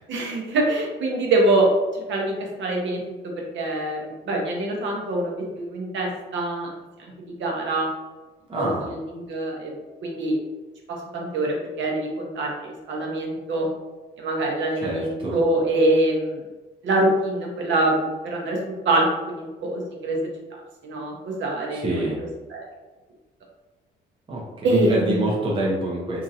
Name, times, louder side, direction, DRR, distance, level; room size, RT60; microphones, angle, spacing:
voice 1, 0.1-1.7 1.9-6.7 7.0-7.1 7.4-7.9 8.6-9.7 10.0-10.4 10.9-13.7 14.2-16.4 16.8-18.6 18.8-20.3 20.8-22.7 24.6-25.3, right 2 dB, 70° right, -1 dB, 0.8 m, -25 dB
voice 2, 8.5-8.9 14.8-15.4 21.7-22.2 24.3-26.2, right 2 dB, 25° right, -4 dB, 0.7 m, -26 dB
2.8 x 2.5 x 2.7 m, 1.2 s
cardioid pair, 90°, 20 cm